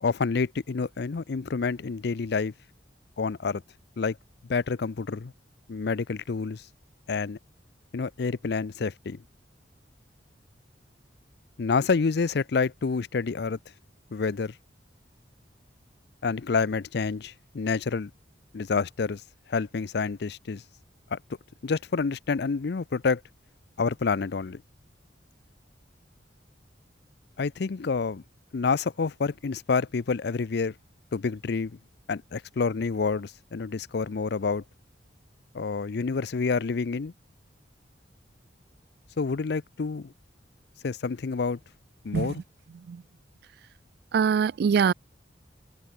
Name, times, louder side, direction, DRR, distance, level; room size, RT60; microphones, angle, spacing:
voice 1, 0.0-2.5 3.2-3.6 4.0-4.2 4.5-5.3 5.7-6.6 7.1-7.4 7.9-9.2 11.6-13.6 14.1-14.5 16.2-18.1 18.5-19.2 19.5-20.6 21.1-21.2 21.6-23.2 23.8-24.6 27.4-28.2 28.5-30.7 31.1-31.8 32.1-34.6 35.5-37.1 39.2-40.1 40.8-41.6 42.0-42.4, left 4 dB, 60° left, 0.5 m, -28 dB
voice 2, 44.1-44.9, right 6 dB, 60° right, 0.3 m, -22 dB
head